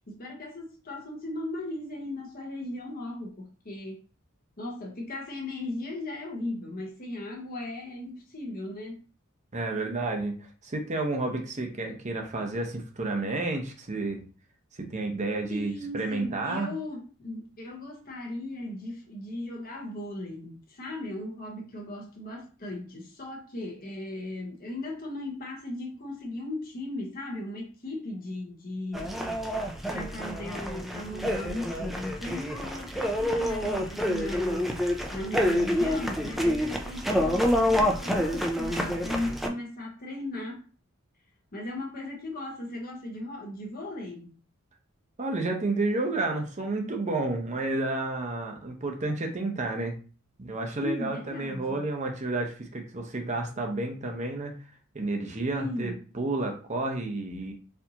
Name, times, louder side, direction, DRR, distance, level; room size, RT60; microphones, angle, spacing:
voice 1, 0.1-4.0 4.6-9.0 15.5-29.3 29.9-34.8 35.1-40.7 41.5-44.3 50.8-51.8 55.5-56.0, left 1 dB, 45° left, 1.0 m, -37 dB
voice 2, 9.5-14.2 14.8-16.7 36.2-36.3 45.2-50.0 50.4-54.6 54.9-57.5, right 2 dB, 35° right, 0.7 m, -31 dB
sound 1, 28.9-39.5, equal, ahead, 0.4 m, -28 dB
4.3 x 2.7 x 2.8 m
head